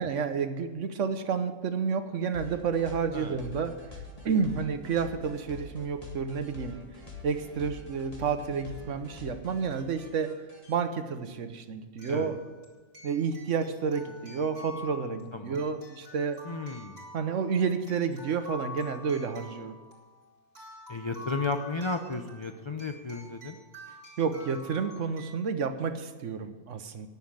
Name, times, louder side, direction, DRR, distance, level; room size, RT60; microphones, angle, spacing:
voice 1, 0.0-6.7 7.2-10.3 10.7-12.4 13.0-16.4 17.1-19.8 24.2-27.1, right 6 dB, 65° right, 9 dB, 1.2 m, -30 dB
sound 1, 2.3-10.7, left 3 dB, 25° left, 2.1 m, -45 dB
sound 2, 10.5-10.6 12.0-25.4, left 2 dB, 45° right, 3.3 m, -47 dB
voice 2, 15.3-15.7 16.4-17.0 20.9-23.6, left 3 dB, 45° left, 6 dB, 0.3 m, -34 dB
10.5 x 7.2 x 9.0 m, 1.3 s
omnidirectional pair, 1.4 m